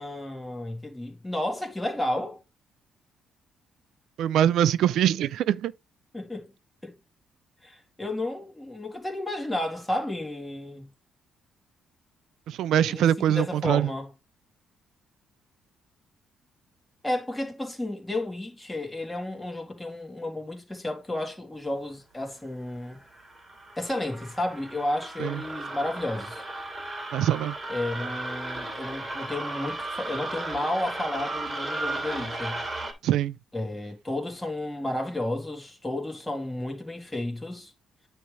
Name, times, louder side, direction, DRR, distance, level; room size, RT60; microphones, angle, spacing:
voice 1, 0.0-2.4 6.1-6.5 6.8-6.9 7.6-10.9 12.7-14.1 17.0-23.0 23.8-26.4 27.7-32.6 33.5-37.7, left 1 dB, 5° left, 2.0 m, -32 dB
voice 2, 4.2-5.7 12.5-13.9 25.2-25.4 27.1-27.5 33.0-33.3, right 11 dB, 75° right, 0.4 m, -23 dB
sound 1, 22.9-32.9, right 2 dB, 15° right, 2.6 m, -35 dB
9.4 x 3.4 x 5.0 m
cardioid pair, 175°, 0 cm